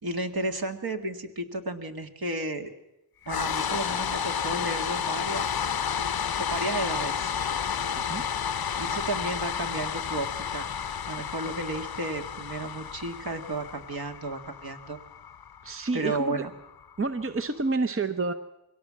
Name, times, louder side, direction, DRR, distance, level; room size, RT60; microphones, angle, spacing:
voice 1, 0.0-2.7 3.3-5.8 6.4-7.3 8.8-10.7 11.1-15.0 15.9-16.5, right 2 dB, 50° right, 5 dB, 1.9 m, -33 dB
sound 1, 3.3-17.4, left 7 dB, 50° left, 0.8 m, -31 dB
voice 2, 15.6-16.4 17.0-18.3, right 3 dB, 30° right, 8 dB, 0.9 m, -29 dB
22.5 x 17.0 x 7.5 m, 0.90 s
cardioid pair, 60°, 46 cm